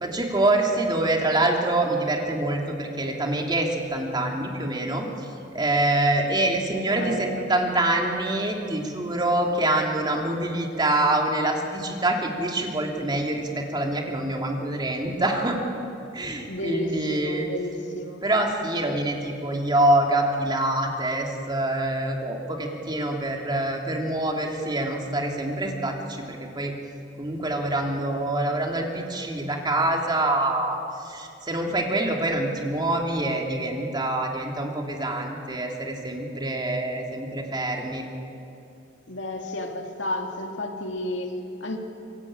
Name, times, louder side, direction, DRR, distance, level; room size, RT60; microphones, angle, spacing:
voice 1, 0.0-5.0 5.5-15.6 16.1-17.5 18.2-26.7 27.2-30.8 31.0-38.0, right 1 dB, 25° right, 1 dB, 3.1 m, -25 dB
voice 2, 6.7-7.5 16.5-18.2 39.1-41.8, left 1 dB, 80° left, 3 dB, 2.7 m, -32 dB
26.0 x 21.5 x 8.9 m, 2.7 s
head